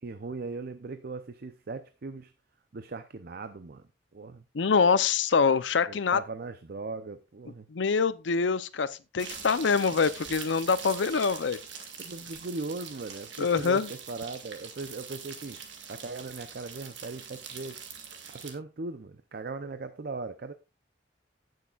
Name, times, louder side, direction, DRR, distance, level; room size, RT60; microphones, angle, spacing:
voice 1, 0.0-2.3 2.7-3.8 4.1-4.4 5.8-7.7 12.0-15.6 15.9-17.8 18.3-20.5, right 3 dB, 55° right, 0.6 m, -39 dB
voice 2, 4.5-6.2 7.7-8.9 9.1-11.6 13.4-13.9, left 5 dB, 80° left, 0.6 m, -25 dB
sound 1, 9.2-18.5, right 6 dB, 75° right, 1.9 m, -43 dB
17.0 x 6.5 x 2.4 m
head